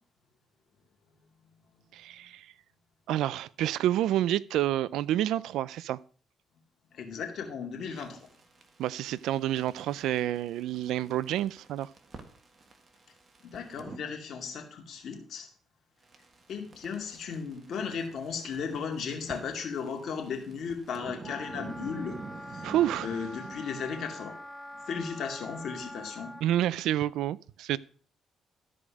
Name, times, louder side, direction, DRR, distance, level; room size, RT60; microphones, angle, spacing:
voice 1, 1.9-2.5 3.1-6.0 8.8-11.9 22.6-23.1 26.4-27.8, right 12 dB, 85° right, 0.4 m, -29 dB
voice 2, 6.9-8.2 13.4-15.5 16.5-22.2 22.5-22.7 23.0-24.4 24.9-26.3, left 6 dB, 65° left, 2.4 m, -36 dB
sound 1, 7.9-14.0 16.0-24.2, right 3 dB, 35° right, 1.7 m, -48 dB
Wind instrument woodwind instrument, 21.2-26.4, left 1 dB, 5° left, 1.1 m, -44 dB
13.0 x 4.9 x 6.3 m
cardioid pair, 90°, 0 cm